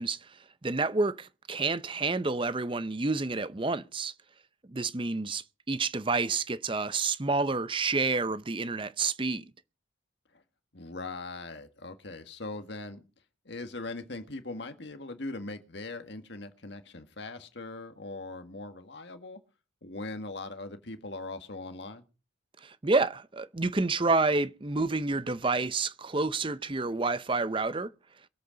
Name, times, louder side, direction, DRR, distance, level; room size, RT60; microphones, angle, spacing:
voice 1, 0.0-4.1 4.7-9.4 22.6-27.9, right 3 dB, 25° right, 0.6 m, -29 dB
voice 2, 10.7-13.0 13.5-19.4 19.8-22.0, left 2 dB, 60° left, 1.8 m, -40 dB
22.5 x 8.3 x 5.2 m
head